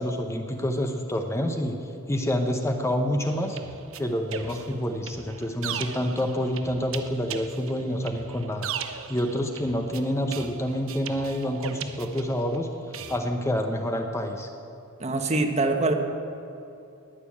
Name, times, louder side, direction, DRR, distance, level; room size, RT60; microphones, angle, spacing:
voice 1, 0.0-1.8 2.1-3.6 4.0-8.7 9.1-12.7 13.1-14.5, equal, 15° left, 4 dB, 0.8 m, -27 dB
sound 1, 3.2-12.6 12.9-13.2, right 7 dB, 65° right, 0.8 m, -38 dB
voice 2, 15.0-15.9, right 2 dB, 30° right, 5 dB, 1.2 m, -24 dB
19.0 x 6.9 x 8.6 m, 2.7 s
head